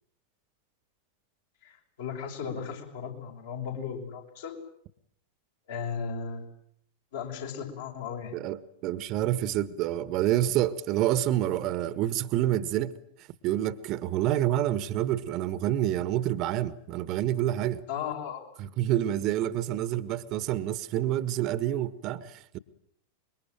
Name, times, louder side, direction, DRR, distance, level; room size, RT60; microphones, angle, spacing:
voice 1, 1.6-4.6 5.7-6.4 7.1-8.3 17.9-18.4, left 6 dB, 60° left, 6.2 m, -36 dB
voice 2, 8.3-12.9 13.4-17.8 18.6-22.6, right 12 dB, 40° right, 1.4 m, -28 dB
26.0 x 22.5 x 9.1 m
figure-of-eight pair, 90°, 0 cm